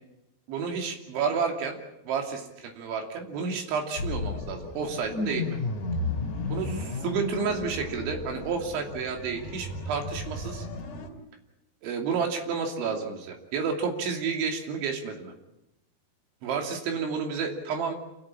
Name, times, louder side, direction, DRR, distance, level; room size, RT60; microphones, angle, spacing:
voice 1, 0.5-5.6 6.5-10.7 11.8-15.3 16.4-17.9, right 5 dB, 80° right, 3 dB, 5.1 m, -30 dB
sound 1, 4.0-11.1, left 3 dB, 45° left, 4.4 m, -34 dB
27.5 x 17.0 x 8.5 m, 0.91 s
omnidirectional pair, 5.3 m